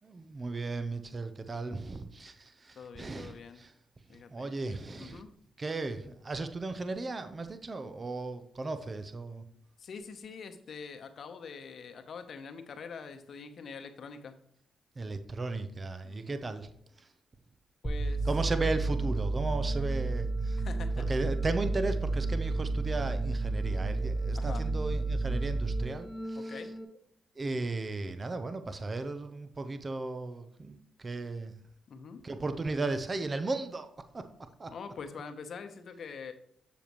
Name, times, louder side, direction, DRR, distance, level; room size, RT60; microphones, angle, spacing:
voice 1, 0.0-3.7 4.3-5.2 5.6-9.4 15.0-16.7 17.0-17.1 18.3-20.6 21.0-26.6 27.4-31.5 32.2-34.2 34.6-34.7, right 3 dB, 35° right, 10 dB, 0.7 m, -35 dB
voice 2, 2.8-3.6 4.1-4.5 5.0-5.3 9.8-14.4 16.0-16.4 17.8-18.3 20.6-21.0 24.3-24.7 26.3-26.7 31.9-32.2 34.7-36.3, left 5 dB, 60° left, 8 dB, 0.9 m, -44 dB
sound 1, 17.8-26.8, right 2 dB, 5° right, 1.2 m, -31 dB
7.0 x 7.0 x 3.0 m, 0.68 s
supercardioid pair, 65°, 0 cm